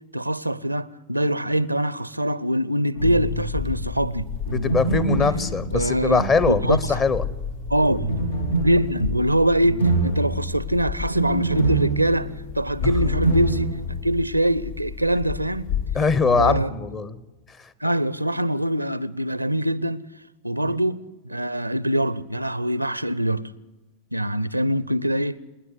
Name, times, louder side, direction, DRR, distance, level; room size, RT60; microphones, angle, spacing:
voice 1, 0.1-4.3 5.7-6.2 6.6-7.1 7.7-8.1 8.6-15.7 16.4-16.7 17.8-20.0 20.4-23.4 24.1-25.4, right 1 dB, 85° right, 0.6 m, -23 dB
sound 1, 2.9-3.7 4.4-7.2 7.9-14.1 14.4-14.5 16.2-16.6, right 2 dB, 80° left, 2.0 m, -26 dB
sound 2, 3.0-16.2, left 7 dB, 60° left, 2.2 m, -33 dB
voice 2, 4.5-7.2 15.9-17.2 20.6-20.7, left 5 dB, 25° left, 1.1 m, -22 dB
27.5 x 10.0 x 9.6 m
figure-of-eight pair, 90°, 0 cm